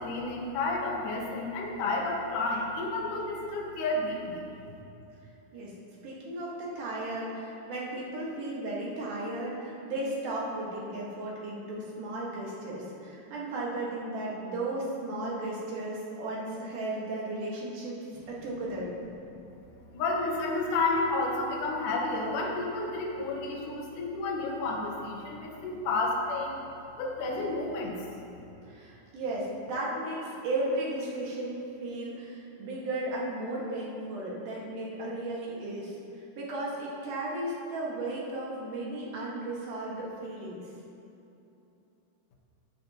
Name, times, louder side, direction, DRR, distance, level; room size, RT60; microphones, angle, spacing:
voice 1, 0.0-4.4 19.9-26.6 27.0-28.1, left 2 dB, 65° left, -2 dB, 2.5 m, -31 dB
voice 2, 6.0-17.9 18.3-18.9 28.6-35.9 36.4-40.7, right 2 dB, 60° right, -5 dB, 3.0 m, -35 dB
14.5 x 8.9 x 3.0 m, 2.9 s
omnidirectional pair, 4.5 m